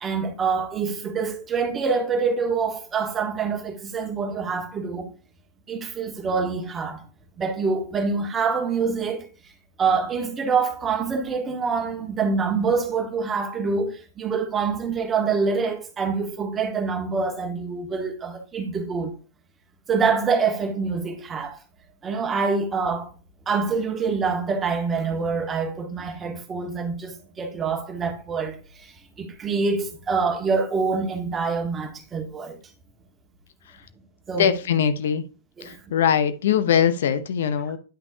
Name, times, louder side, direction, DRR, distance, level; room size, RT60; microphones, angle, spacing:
voice 1, 0.0-5.1 5.7-7.0 7.4-9.3 9.8-19.1 19.9-21.6 22.0-23.1 23.5-32.6 34.3-34.5 35.6-35.8, right 5 dB, 20° right, 1.5 m, -26 dB
voice 2, 34.4-35.2 35.6-37.8, left 8 dB, 65° left, 0.7 m, -22 dB
9.9 x 5.9 x 2.7 m
figure-of-eight pair, 105°, 0 cm